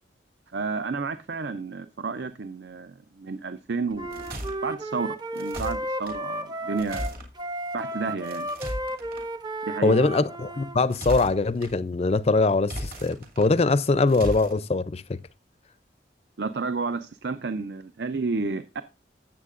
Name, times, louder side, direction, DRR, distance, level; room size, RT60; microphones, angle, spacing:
voice 1, 0.5-7.2 7.7-8.5 9.6-9.9 16.4-18.8, right 4 dB, 65° right, 0.5 m, -31 dB
Wind instrument woodwind instrument, 3.9-10.8, right 1 dB, 25° right, 0.6 m, -33 dB
sound 1, 4.0-4.6 5.3-6.2 6.8-7.3 8.2-9.2 10.7-11.7 12.6-13.5 14.1-14.5, equal, 50° right, 2.6 m, -35 dB
voice 2, 9.8-15.2, left 3 dB, 35° left, 0.4 m, -22 dB
15.0 x 7.4 x 2.5 m
head